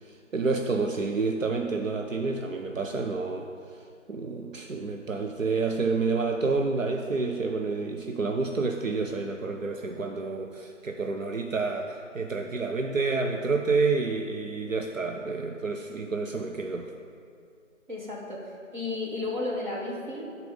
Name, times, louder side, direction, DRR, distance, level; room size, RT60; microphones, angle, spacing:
voice 1, 0.0-16.9, right 4 dB, 75° right, 3 dB, 0.7 m, -29 dB
voice 2, 17.9-20.3, left 2 dB, 35° right, -4 dB, 1.7 m, -33 dB
12.0 x 4.2 x 5.4 m, 2.4 s
figure-of-eight pair, 160°, 39 cm